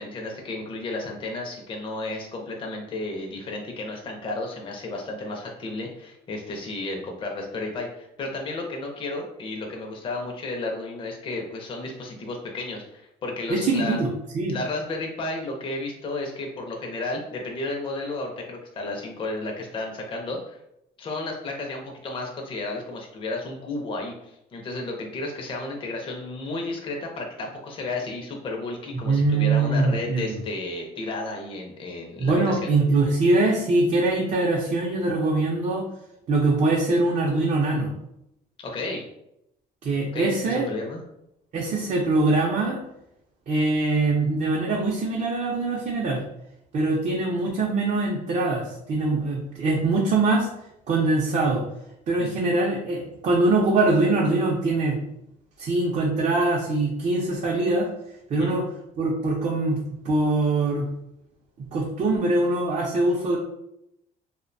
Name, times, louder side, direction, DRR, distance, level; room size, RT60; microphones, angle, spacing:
voice 1, 0.0-14.0 14.5-20.6 21.0-32.7 38.6-39.0 40.1-41.0 52.2-52.3 58.3-58.6, left 2 dB, 30° left, 1 dB, 0.5 m, -33 dB
voice 2, 13.5-14.1 14.3-14.6 29.0-30.4 32.2-35.8 36.3-37.9 39.8-40.6 41.5-42.8 43.5-46.2 46.7-50.5 50.9-51.6 52.1-55.0 55.6-57.9 58.3-58.7 59.0-60.9 61.6-63.4, right 2 dB, 45° right, -2 dB, 0.5 m, -23 dB
2.5 x 2.1 x 2.5 m, 0.82 s
cardioid pair, 110°, 17 cm